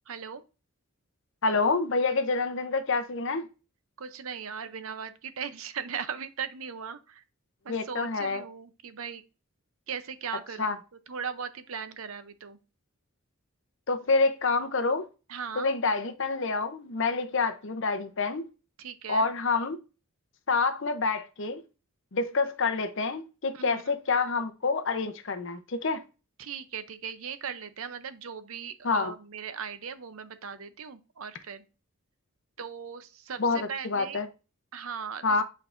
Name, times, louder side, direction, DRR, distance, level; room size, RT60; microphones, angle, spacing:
voice 1, 0.1-0.4 4.0-7.2 7.6-9.2 9.9-10.8 11.1-12.6 15.3-15.7 18.8-19.3 23.5-23.9 26.4-31.6 32.6-34.2 34.7-35.2, right 6 dB, 70° right, 0.6 m, -38 dB
voice 2, 1.4-3.5 7.7-8.4 10.6-10.8 13.9-15.1 15.6-18.4 19.1-19.8 20.5-21.6 22.1-26.0 28.8-29.1 33.4-34.3 35.2-35.4, left 4 dB, 55° left, 0.7 m, -27 dB
8.1 x 4.6 x 2.5 m
head